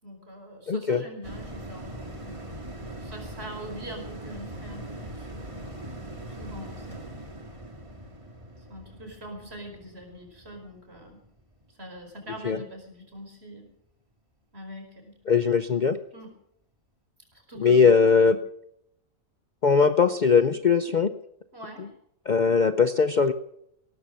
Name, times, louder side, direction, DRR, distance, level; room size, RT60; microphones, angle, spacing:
voice 1, 0.0-2.4 2.8-5.6 6.3-7.1 8.6-11.2 11.7-13.7 14.5-15.1 16.1-16.3 17.3-17.9 18.3-18.4 20.4-20.6 21.5-21.9, equal, 50° right, 3 dB, 5.2 m, -43 dB
voice 2, 0.7-1.0 12.4-12.6 15.3-16.0 17.6-18.4 19.6-21.1 22.3-23.3, left 5 dB, 45° left, 11 dB, 0.7 m, -20 dB
sound 1, 1.2-11.9 12.3-12.4, right 1 dB, 25° right, 2.2 m, -41 dB
18.0 x 13.5 x 5.5 m, 0.73 s
omnidirectional pair, 1.4 m